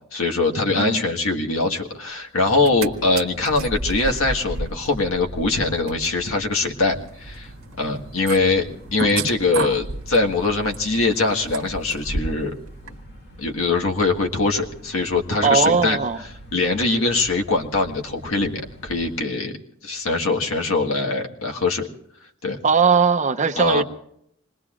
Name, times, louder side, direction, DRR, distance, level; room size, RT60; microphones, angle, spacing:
voice 1, 0.1-7.5 7.8-12.5 12.8-12.9 13.4-16.0 16.5-19.5 19.8-21.9 22.4-22.6 23.6-23.8, left 3 dB, 90° left, 2 dB, 1.7 m, -22 dB
sound 1, 2.4-19.2, right 1 dB, 55° left, 2.5 m, -43 dB
sound 2, 2.5-2.9 3.2-12.5 12.9-13.0, right 2 dB, 75° right, 1.1 m, -32 dB
voice 2, 15.4-16.2 22.6-23.8, right 5 dB, 35° right, 7 dB, 0.7 m, -19 dB
27.0 x 21.0 x 2.5 m, 0.73 s
head